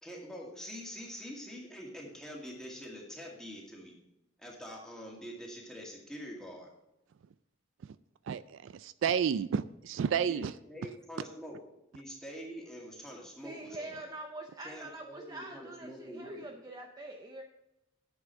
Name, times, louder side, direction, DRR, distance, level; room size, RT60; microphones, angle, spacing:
voice 1, 0.0-3.9 4.4-6.7 10.2-11.6 11.9-14.1 14.6-16.5, equal, 5° left, -2 dB, 2.2 m, -45 dB
voice 2, 8.3-10.5, right 7 dB, 65° right, 15 dB, 0.3 m, -31 dB
voice 3, 13.4-17.4, right 2 dB, 20° right, 2 dB, 0.7 m, -44 dB
9.7 x 7.3 x 4.6 m, 0.89 s
head